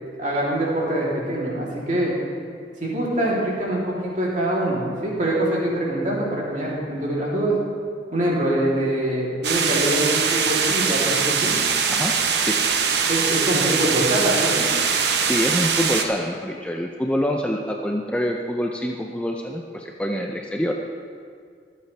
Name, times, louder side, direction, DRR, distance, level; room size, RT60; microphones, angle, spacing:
voice 1, 0.2-2.1 2.8-7.6 8.1-11.5 13.1-14.7, right 1 dB, 45° right, -6 dB, 3.2 m, -24 dB
sound 1, 9.4-16.0, right 6 dB, 65° right, 0.9 m, -22 dB
voice 2, 15.3-20.7, equal, 5° left, 1 dB, 0.5 m, -26 dB
24.0 x 8.3 x 3.4 m, 2.2 s
head